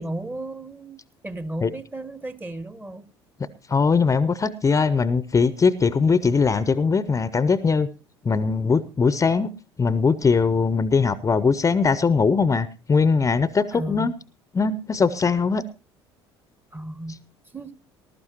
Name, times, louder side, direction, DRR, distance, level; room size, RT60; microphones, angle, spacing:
voice 1, 0.0-3.1 13.7-14.2 16.7-17.2 17.5-17.7, right 1 dB, 15° right, 16 dB, 1.0 m, -34 dB
voice 2, 3.7-7.9 8.2-9.5 9.8-14.1 14.5-15.6, left 5 dB, 25° left, 16 dB, 0.7 m, -20 dB
20.0 x 12.0 x 3.0 m, 0.30 s
figure-of-eight pair, 60°, 14 cm